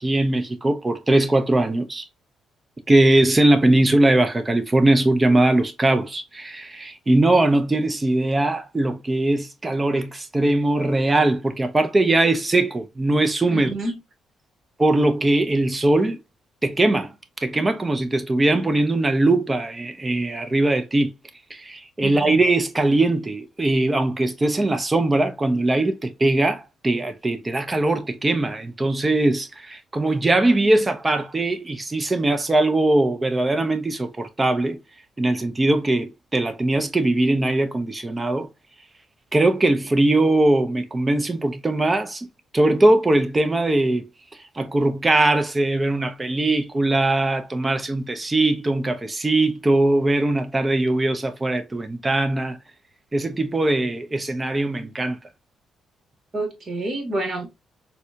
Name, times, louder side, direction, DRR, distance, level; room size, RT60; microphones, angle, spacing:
voice 1, 0.0-2.0 2.9-13.7 14.8-16.2 16.6-17.1 17.4-21.1 21.5-34.8 35.2-38.5 39.3-42.3 42.5-44.1 44.6-52.6 53.1-55.2, right 2 dB, 20° right, 0.7 m, -20 dB
voice 2, 13.5-14.0 22.0-22.4 56.3-57.5, right 2 dB, 40° right, 1.6 m, -28 dB
4.2 x 2.3 x 2.5 m
cardioid pair, 90°, 0 cm